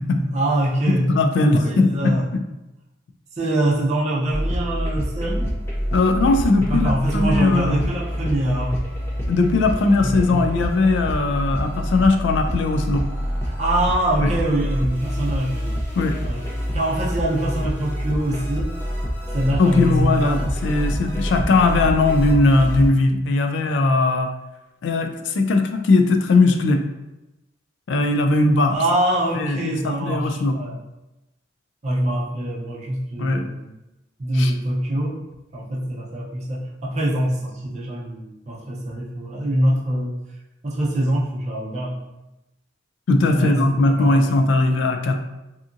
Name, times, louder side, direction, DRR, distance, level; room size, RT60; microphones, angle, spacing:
voice 1, 0.2-1.1 1.5-2.3 3.3-5.6 6.7-8.8 10.0-10.5 13.4-15.7 16.2-16.5 16.7-18.8 19.3-20.5 21.4-21.5 28.7-30.8 31.8-33.7 34.2-40.2 40.6-42.0 43.3-44.3, right 1 dB, 35° right, -5 dB, 0.5 m, -24 dB
voice 2, 0.9-2.4 5.9-7.9 9.3-13.0 14.2-14.3 16.0-16.2 19.6-24.3 24.8-26.8 27.9-28.8 29.3-30.6 33.2-33.4 34.4-34.5 43.1-45.2, left 3 dB, 75° left, 5 dB, 0.3 m, -19 dB
sound 1, 4.3-22.9, equal, 15° left, 0.5 m, -27 dB
2.7 x 2.5 x 2.5 m, 0.97 s
head